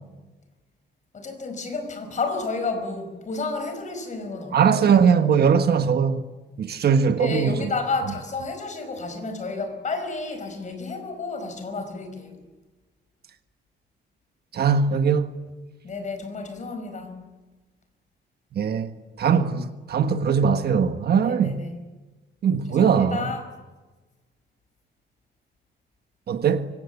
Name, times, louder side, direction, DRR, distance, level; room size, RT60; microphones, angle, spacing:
voice 1, 1.1-5.0 7.2-12.4 15.8-17.2 21.2-21.9 22.7-23.5, left 3 dB, 40° left, 5.2 m, -31 dB
voice 2, 4.5-6.2 6.6-7.5 14.5-15.3 18.5-18.9 19.2-21.6 22.4-23.3 26.3-26.7, right 6 dB, 55° right, 1.4 m, -20 dB
25.0 x 25.0 x 8.3 m
wide cardioid pair, 170°, 20 cm